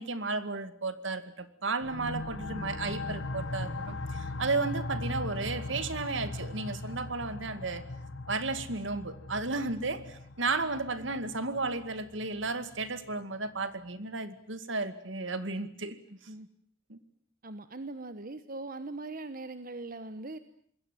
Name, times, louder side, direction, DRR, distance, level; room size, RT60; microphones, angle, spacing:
voice 1, 0.0-7.8 8.3-16.0 16.9-17.0, right 3 dB, 70° right, 11 dB, 2.2 m, -33 dB
sound 1, 1.8-13.1, left 2 dB, 70° left, 1.4 m, -39 dB
voice 2, 16.1-16.5 17.4-20.4, right 2 dB, 45° right, 11 dB, 1.2 m, -41 dB
26.5 x 21.5 x 9.1 m, 0.62 s
head